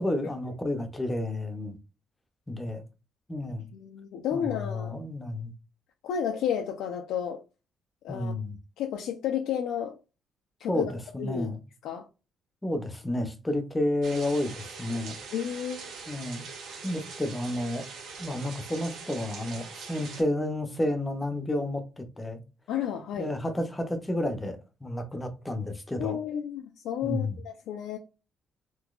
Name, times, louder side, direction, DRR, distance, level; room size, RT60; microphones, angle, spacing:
voice 1, 0.0-1.8 2.5-2.8 3.3-3.6 4.3-5.5 8.1-8.6 10.7-11.6 12.6-15.2 16.1-16.5 16.8-17.8 18.2-22.4 23.2-26.2 27.0-27.4, left 1 dB, 10° left, 0.6 m, -31 dB
voice 2, 3.7-4.9 6.0-7.4 8.0-8.3 8.8-10.0 10.6-10.9 11.2-11.5 11.8-12.1 15.3-15.8 22.7-23.3 26.0-28.0, left 9 dB, 85° left, 0.4 m, -31 dB
sound 1, 14.0-20.2, right 4 dB, 70° right, 1.2 m, -42 dB
3.7 x 2.8 x 2.4 m
cardioid pair, 145°, 0 cm